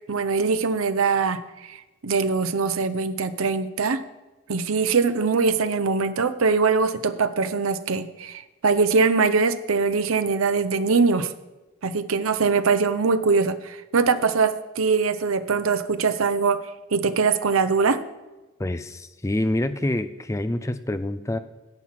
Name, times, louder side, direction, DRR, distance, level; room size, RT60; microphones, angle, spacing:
voice 1, 0.1-1.8 2.0-4.0 4.5-11.3 11.8-16.6 16.9-18.0, right 4 dB, 90° right, 11 dB, 0.7 m, -22 dB
voice 2, 18.6-21.4, left 1 dB, 15° left, 11 dB, 0.4 m, -26 dB
10.5 x 7.4 x 5.8 m, 1.1 s
head